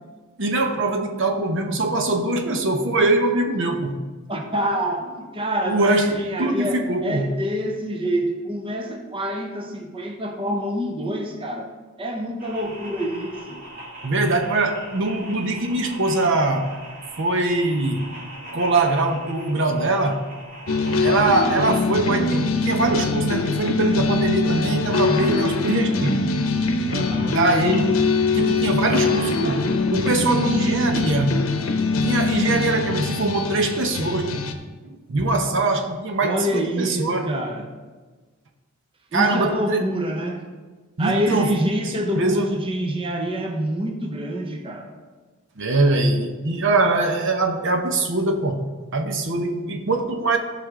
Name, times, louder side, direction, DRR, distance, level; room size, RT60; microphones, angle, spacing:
voice 1, 0.4-4.0 5.7-7.3 14.0-16.7 17.2-18.1 18.5-20.3 21.0-26.3 27.3-28.0 28.3-31.4 32.0-34.5 34.8-37.3 39.1-39.8 41.0-41.5 42.2-42.5 45.6-48.6 48.9-50.4, right 2 dB, 60° right, 5 dB, 0.8 m, -22 dB
voice 2, 4.3-11.7 12.0-13.6 26.9-27.4 36.2-37.7 39.1-40.4 41.0-44.9, equal, 25° right, 3 dB, 0.9 m, -26 dB
sound 1, 12.4-21.8, right 1 dB, 40° right, 2.0 m, -40 dB
sound 2, 20.7-34.5, left 3 dB, 75° left, 0.8 m, -23 dB
15.0 x 5.1 x 3.7 m, 1.3 s
head